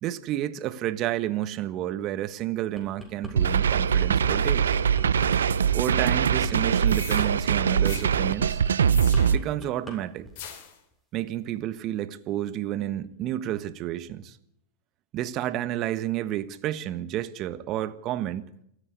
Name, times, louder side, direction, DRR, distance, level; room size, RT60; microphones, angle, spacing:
voice 1, 0.0-4.7 5.7-8.6 9.3-10.3 11.1-14.4 15.1-18.5, right 13 dB, 45° right, 1.5 m, -30 dB
sound 1, 2.5-3.3 3.8-10.0 10.2-10.5, left 1 dB, 10° left, 7.5 m, -42 dB
sound 2, 3.4-9.4, right 7 dB, 85° right, 0.7 m, -22 dB
sound 3, 6.9-7.3 7.9-8.1 8.9-9.5 10.4-10.8, left 9 dB, 65° left, 3.6 m, -41 dB
28.0 x 9.9 x 9.7 m
hypercardioid pair, 95°, 0 cm